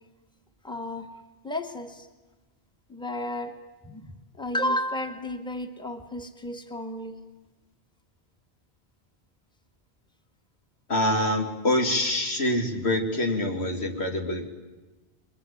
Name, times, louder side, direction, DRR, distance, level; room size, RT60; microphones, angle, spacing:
voice 1, 0.6-1.1 1.4-2.1 2.9-3.6 3.8-7.2, left 1 dB, 5° left, 5 dB, 1.9 m, -32 dB
voice 2, 10.9-14.5, left 1 dB, 75° left, 3 dB, 2.9 m, -25 dB
29.0 x 22.5 x 8.6 m, 1.2 s
omnidirectional pair, 1.1 m